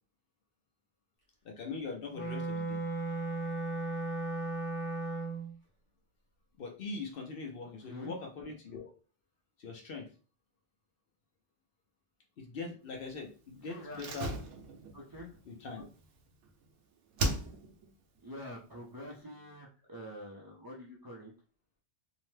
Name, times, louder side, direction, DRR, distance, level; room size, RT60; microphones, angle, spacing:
voice 1, 1.4-2.8 6.6-8.9 9.6-10.1 12.4-14.3 15.5-15.9, left 4 dB, 60° left, 2 dB, 0.7 m, -42 dB
Wind instrument woodwind instrument, 2.1-5.5, right 3 dB, 20° left, 0.9 m, -35 dB
voice 2, 7.6-8.1 13.6-14.2 14.9-15.4 18.2-21.3, equal, 35° right, -3 dB, 0.3 m, -46 dB
Slam, 13.9-16.7 17.2-17.9 18.2-18.3, right 1 dB, 80° right, 0.9 m, -37 dB
2.7 x 2.1 x 3.1 m, 0.38 s
omnidirectional pair, 1.2 m